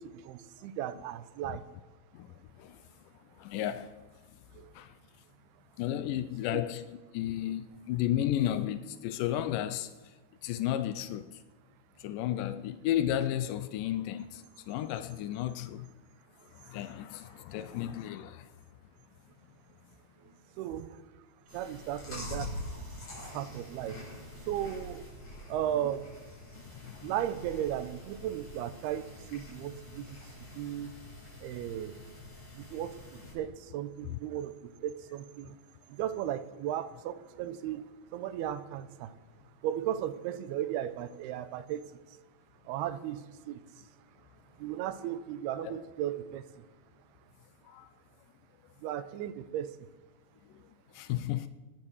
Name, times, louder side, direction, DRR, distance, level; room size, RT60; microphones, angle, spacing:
voice 1, 0.0-1.7 4.5-4.7 6.5-6.6 17.3-17.4 20.2-21.0 21.5-23.0 23.3-24.1 24.4-25.1 25.5-26.2 27.0-30.2 30.5-30.9 31.4-32.1 32.5-35.6 35.9-37.8 38.1-39.1 39.6-41.9 42.7-43.6 44.6-46.7 48.8-49.9, right 11 dB, 85° right, 2.7 m, -36 dB
voice 2, 3.5-3.8 5.8-6.8 7.2-7.6 7.9-9.9 10.4-11.2 12.0-14.2 14.7-15.8 16.7-17.2 17.5-18.3 45.6-45.7 51.1-51.5, left 12 dB, 90° left, 1.9 m, -32 dB
Chewing mastication, 21.5-33.3, left 1 dB, 40° left, 7.4 m, -45 dB
22.5 x 9.9 x 6.4 m
omnidirectional pair, 4.5 m